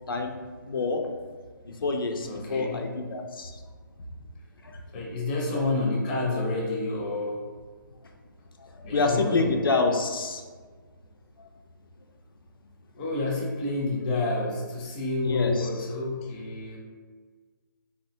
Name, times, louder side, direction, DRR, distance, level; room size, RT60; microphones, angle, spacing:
voice 1, 0.6-1.0 1.8-3.6 4.6-4.8 8.9-10.4 15.2-15.7, left 3 dB, 85° left, 3 dB, 0.4 m, -27 dB
voice 2, 2.2-2.8 4.9-7.4 8.8-9.6 12.9-16.8, left 2 dB, 25° left, -1 dB, 0.5 m, -29 dB
3.5 x 2.1 x 2.7 m, 1.5 s
hypercardioid pair, 150°, 11 cm